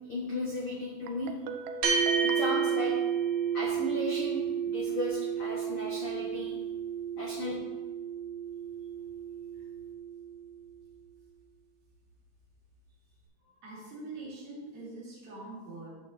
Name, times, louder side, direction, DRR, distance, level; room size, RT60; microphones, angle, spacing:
voice 1, 0.1-1.3 2.2-2.9 3.5-6.5 7.1-7.5, left 1 dB, 65° left, -5 dB, 1.3 m, -35 dB
Guitar, 1.1-3.9, right 3 dB, 80° right, 2.5 m, -41 dB
sound 1, 1.8-10.5, right 7 dB, 50° right, 2.2 m, -31 dB
voice 2, 13.4-15.9, right 2 dB, 65° right, -5 dB, 3.8 m, -44 dB
10.5 x 8.4 x 2.6 m, 1.3 s
omnidirectional pair, 4.5 m